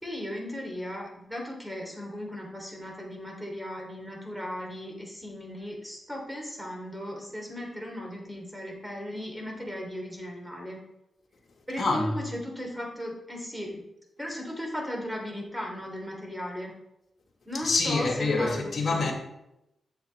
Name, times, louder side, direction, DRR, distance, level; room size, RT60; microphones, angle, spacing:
voice 1, 0.0-10.8 11.7-13.8 14.2-16.7 17.5-19.1, left 1 dB, 5° right, 3.4 m, -36 dB
voice 2, 11.8-12.2 17.5-19.1, left 3 dB, 50° left, 2.0 m, -26 dB
9.4 x 7.4 x 3.5 m
cardioid pair, 50°, 0 cm